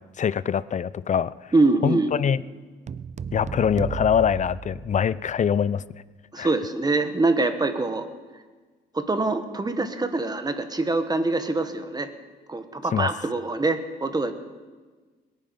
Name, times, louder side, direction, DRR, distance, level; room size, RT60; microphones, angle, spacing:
voice 1, 0.2-1.3 1.8-2.4 3.3-5.8 6.4-6.5 12.9-13.1, left 8 dB, 40° left, 18 dB, 0.5 m, -23 dB
voice 2, 1.5-2.1 6.3-8.1 8.9-12.1 12.5-14.3, right 2 dB, 20° right, 9 dB, 1.3 m, -24 dB
sound 1, 2.9-5.4, right 6 dB, 35° right, 0.5 m, -35 dB
22.0 x 9.3 x 5.3 m, 1.4 s
cardioid pair, 90°, 20 cm